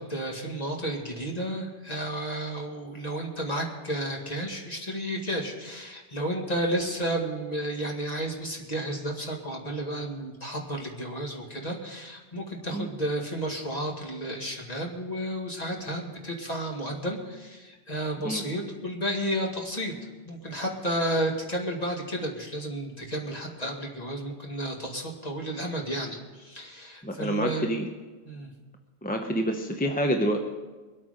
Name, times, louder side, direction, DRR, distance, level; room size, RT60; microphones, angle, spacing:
voice 1, 0.0-19.9 20.3-27.7 28.3-28.5, right 1 dB, 40° left, 0 dB, 2.1 m, -32 dB
voice 2, 27.0-27.9 29.0-30.4, equal, 10° left, 3 dB, 0.8 m, -27 dB
22.5 x 8.6 x 5.1 m, 1.3 s
omnidirectional pair, 1.1 m